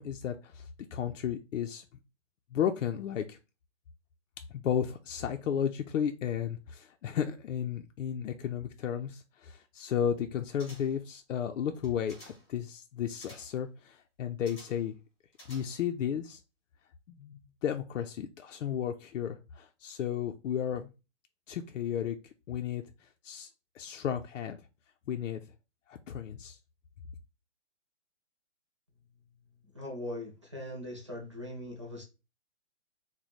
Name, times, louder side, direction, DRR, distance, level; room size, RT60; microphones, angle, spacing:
voice 1, 0.0-1.8 2.5-3.4 4.5-15.0 15.5-16.4 17.1-20.9 21.5-24.6 25.1-25.4 25.9-26.6, left 9 dB, 85° left, 0.5 m, -34 dB
sound 1, 10.6-11.1 11.7-12.5 13.2-13.6 14.5-14.9 15.3-16.0 16.3-16.4, equal, 20° left, 1.0 m, -53 dB
voice 2, 29.7-32.0, left 1 dB, 25° right, 0.4 m, -40 dB
3.1 x 2.1 x 4.0 m
hypercardioid pair, 170°, 37 cm